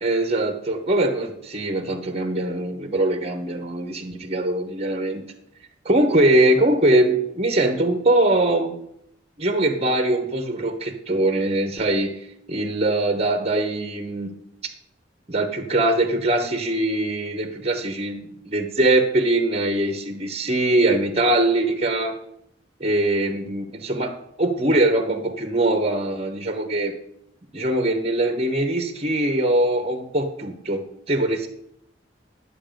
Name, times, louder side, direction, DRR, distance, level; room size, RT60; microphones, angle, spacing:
voice 1, 0.0-5.2 5.8-8.8 9.4-12.2 12.5-14.3 15.3-22.2 22.8-26.9 27.5-31.5, right 1 dB, 35° right, 8 dB, 1.1 m, -22 dB
11.0 x 7.1 x 5.1 m, 0.74 s
head